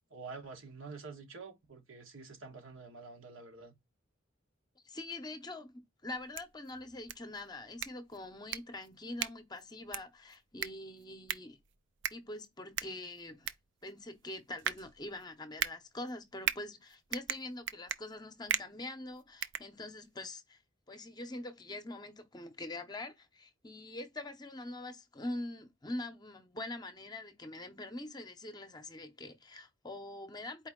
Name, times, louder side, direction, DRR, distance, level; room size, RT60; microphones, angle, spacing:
voice 1, 0.1-3.7, right 4 dB, 90° right, 1.6 m, -48 dB
voice 2, 4.8-11.6 12.1-13.5 13.8-20.6 20.9-30.7, left 2 dB, 20° left, 0.7 m, -44 dB
sound 1, 6.1-20.3, right 10 dB, 65° right, 0.4 m, -40 dB
4.6 x 2.7 x 3.6 m
head